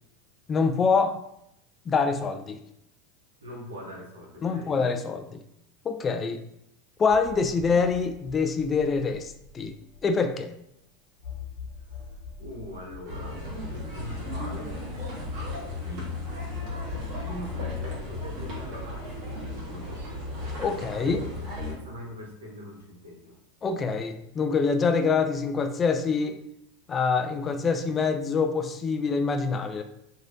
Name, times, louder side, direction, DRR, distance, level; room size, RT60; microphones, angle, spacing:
voice 1, 0.5-1.2 1.9-2.6 4.4-5.4 5.8-6.4 7.0-9.7 10.0-10.5 20.6-21.2 23.6-26.4 26.9-29.8, left 5 dB, 30° left, 7 dB, 0.3 m, -25 dB
voice 2, 3.4-4.7 11.8-13.4 13.7-14.8 15.6-16.2 17.0-20.0 21.0-23.4, equal, 85° right, -2 dB, 1.0 m, -43 dB
sound 1, 7.1-10.3 10.7-10.8 11.2-15.7 16.5-20.8, left 5 dB, 65° left, 1.0 m, -45 dB
sound 2, 13.1-21.8, left 2 dB, 55° right, 1.3 m, -35 dB
3.2 x 2.7 x 2.6 m, 0.78 s
hypercardioid pair, 90°, 0 cm